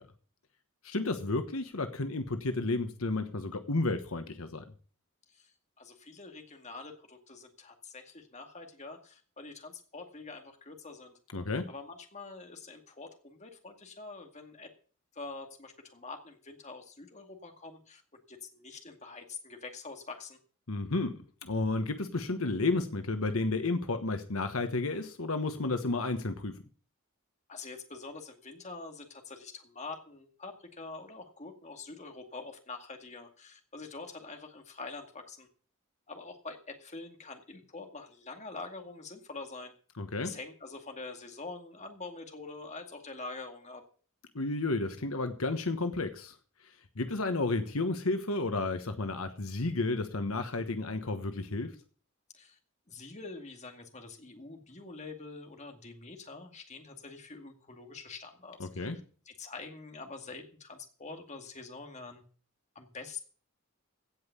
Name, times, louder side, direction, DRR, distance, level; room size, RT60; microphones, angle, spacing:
voice 1, 0.8-4.6 11.3-11.7 20.7-26.5 40.0-40.3 44.3-46.3 47.0-51.7 58.6-59.0, left 2 dB, 75° left, 8 dB, 1.3 m, -32 dB
voice 2, 5.3-11.2 11.7-14.7 15.1-18.0 18.3-20.4 27.5-35.5 36.1-39.7 40.2-43.8 52.3-52.6 52.9-58.9 59.3-62.2 62.8-63.2, left 3 dB, 35° left, 5 dB, 2.2 m, -45 dB
16.5 x 5.6 x 8.1 m, 0.42 s
head